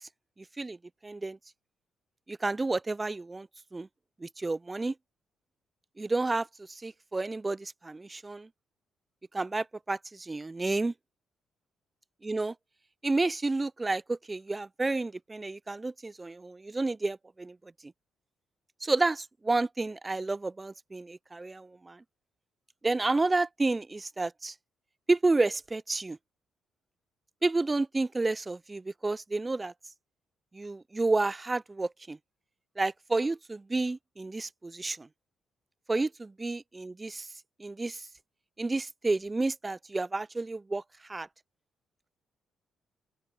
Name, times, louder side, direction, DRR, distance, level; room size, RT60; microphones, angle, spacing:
voice 1, 1.0-1.4 2.3-3.5 3.7-3.9 4.2-4.9 6.0-8.5 9.3-10.9 12.2-12.5 13.0-17.6 18.8-22.0 22.8-24.5 25.1-26.2 27.4-29.7 30.5-32.2 32.8-35.1 35.9-37.3 37.6-38.1 38.6-40.8 41.1-41.3, right 3 dB, 20° right, 0.4 m, -30 dB
open air
cardioid pair, 90°, 0 cm